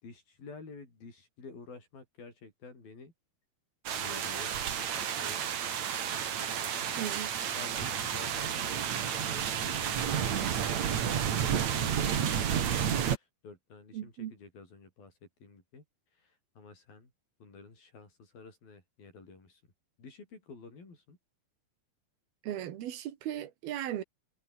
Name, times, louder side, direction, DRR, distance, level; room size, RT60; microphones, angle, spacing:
voice 1, 0.0-3.1 3.9-5.5 6.4-12.8 13.0-15.8 16.2-17.1 17.4-19.6 20.0-21.2, left 4 dB, 65° left, 9.3 m, -51 dB
sound 1, 3.9-13.2, right 8 dB, 50° right, 3.0 m, -31 dB
voice 2, 7.0-7.3 13.9-14.3 22.4-24.0, right 11 dB, 80° right, 3.6 m, -37 dB
omnidirectional pair, 4.4 m